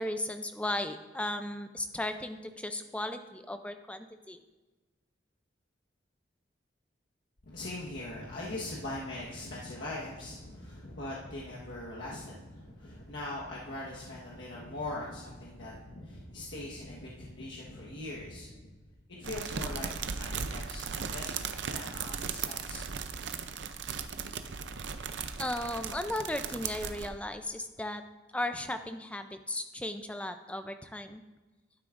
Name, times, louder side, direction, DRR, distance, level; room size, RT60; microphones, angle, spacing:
voice 1, 0.0-4.4 25.4-28.0 28.3-31.2, left 1 dB, 5° left, 8 dB, 0.5 m, -36 dB
voice 2, 7.4-18.7 19.1-22.9, left 2 dB, 75° left, -5 dB, 1.4 m, -41 dB
sound 1, 19.2-27.1, right 6 dB, 70° right, 0.6 m, -37 dB
11.5 x 9.3 x 2.5 m, 1.2 s
head